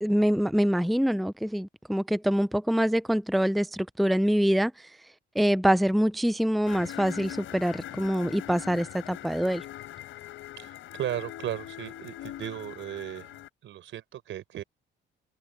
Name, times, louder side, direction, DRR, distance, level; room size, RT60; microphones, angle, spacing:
voice 1, 0.0-4.7 5.3-9.6, equal, ahead, 0.6 m, -25 dB
sound 1, 6.7-13.5, left 13 dB, 85° left, 5.4 m, -42 dB
voice 2, 10.6-14.6, right 12 dB, 75° right, 4.7 m, -36 dB
open air
cardioid pair, 90°, 20 cm